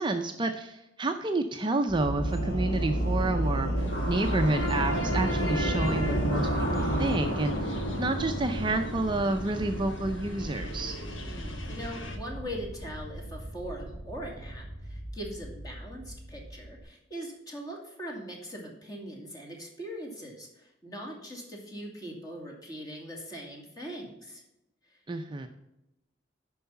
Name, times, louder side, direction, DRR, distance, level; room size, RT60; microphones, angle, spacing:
voice 1, 0.0-3.7 4.1-7.5 8.0-10.9 25.1-25.5, right 2 dB, 25° right, 6 dB, 0.5 m, -29 dB
sound 1, 1.9-16.8, right 1 dB, 55° left, 3.7 m, -31 dB
sound 2, 3.8-12.2, left 1 dB, 85° left, 1.4 m, -41 dB
voice 2, 11.2-24.4, equal, 20° left, -1 dB, 2.4 m, -41 dB
11.0 x 4.7 x 5.7 m, 0.90 s
head